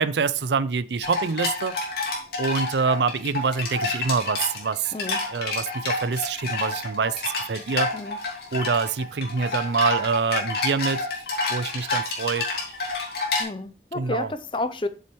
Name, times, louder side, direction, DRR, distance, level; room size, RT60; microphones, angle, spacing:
voice 1, 0.0-2.0 2.4-4.9 5.3-7.9 8.5-11.1 11.5-12.4 13.9-14.3, right 5 dB, 80° right, 0.5 m, -25 dB
sound 1, 1.0-13.4, left 3 dB, 60° left, 2.7 m, -29 dB
voice 2, 4.9-5.2 7.9-8.2 13.4-14.9, left 2 dB, 30° left, 0.6 m, -30 dB
7.9 x 7.1 x 3.0 m
head